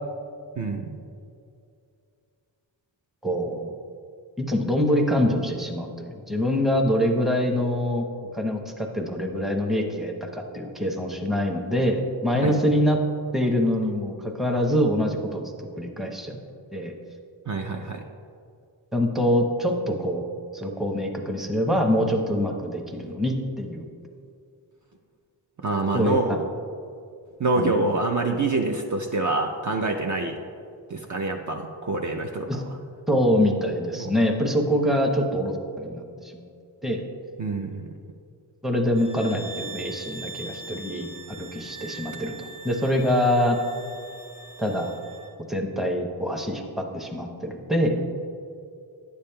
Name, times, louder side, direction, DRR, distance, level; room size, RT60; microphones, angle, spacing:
voice 1, 0.6-1.0 12.4-12.5 17.5-18.0 25.6-26.5 27.4-30.4 30.9-32.7 34.0-34.1 37.4-37.9, right 3 dB, 40° right, 2 dB, 0.5 m, -26 dB
voice 2, 3.2-3.7 4.4-8.0 8.3-13.0 13.3-15.4 15.8-16.4 16.7-16.9 18.9-20.3 20.5-23.9 25.9-26.4 27.5-27.7 32.5-32.6 33.1-36.3 36.8-37.0 38.6-41.1 41.4-43.6 44.6-45.0 45.5-48.0, equal, ahead, 2 dB, 0.7 m, -25 dB
sound 1, 38.9-45.3, right 3 dB, 65° right, 1.1 m, -41 dB
10.0 x 6.9 x 2.2 m, 2.4 s
cardioid pair, 55°, 47 cm